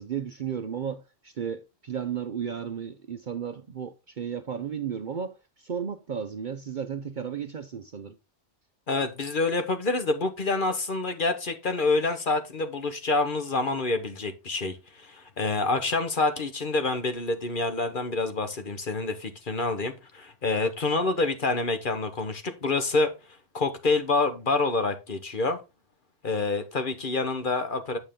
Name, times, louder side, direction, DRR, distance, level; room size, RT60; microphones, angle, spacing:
voice 1, 0.0-8.2, right 7 dB, 50° right, 0.7 m, -34 dB
voice 2, 8.9-23.1 23.5-25.6 26.2-28.0, left 3 dB, 45° left, 1.2 m, -27 dB
9.1 x 6.8 x 3.6 m
omnidirectional pair, 1.3 m